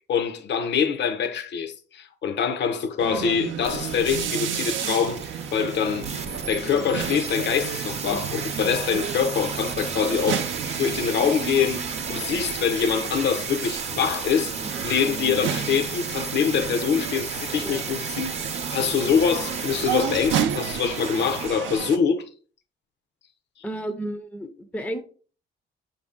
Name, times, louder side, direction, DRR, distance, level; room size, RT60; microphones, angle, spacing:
voice 1, 0.1-6.1 6.5-10.4 10.8-14.5 14.8-18.3 18.7-22.3, left 7 dB, 65° left, 0.6 m, -24 dB
sound 1, 3.0-22.0, right 8 dB, 75° right, 0.6 m, -32 dB
sound 2, 3.6-21.5 21.8-21.9, right 4 dB, 30° right, 0.7 m, -34 dB
voice 2, 23.6-25.0, right 1 dB, 5° left, 0.5 m, -32 dB
5.3 x 2.7 x 3.5 m
cardioid pair, 90°, 20 cm